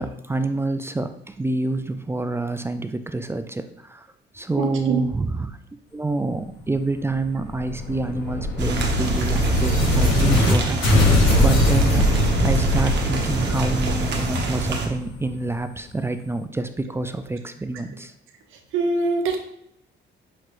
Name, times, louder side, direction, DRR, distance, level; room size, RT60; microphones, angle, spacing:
voice 1, 0.0-4.1 4.3-5.5 5.9-18.1, right 2 dB, 10° right, 9 dB, 0.3 m, -27 dB
voice 2, 4.6-5.0 18.7-19.4, right 4 dB, 85° right, 5 dB, 0.7 m, -23 dB
sound 1, 7.1-10.5 10.8-15.5, left 1 dB, 80° left, 1.4 m, -21 dB
sound 2, 8.6-14.9, right 3 dB, 60° right, 1.0 m, -26 dB
5.9 x 3.0 x 3.0 m, 0.75 s
cardioid pair, 90°, 20 cm